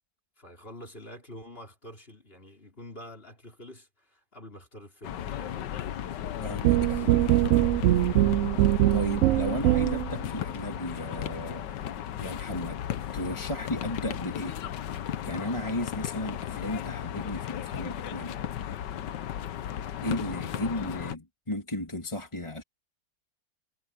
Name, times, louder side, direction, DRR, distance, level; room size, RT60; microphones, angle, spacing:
voice 1, 0.4-5.8 6.8-7.1 9.6-9.8 20.5-20.7, left 1 dB, 30° left, 5.6 m, -47 dB
sound 1, 5.0-21.2, left 10 dB, 90° left, 1.6 m, -35 dB
voice 2, 6.4-7.0 8.9-11.7 12.2-12.8 13.1-14.6 15.2-18.4 20.0-22.6, left 1 dB, 15° left, 2.4 m, -34 dB
sound 2, 6.6-10.2, right 14 dB, 75° right, 0.7 m, -22 dB
omnidirectional pair, 1.8 m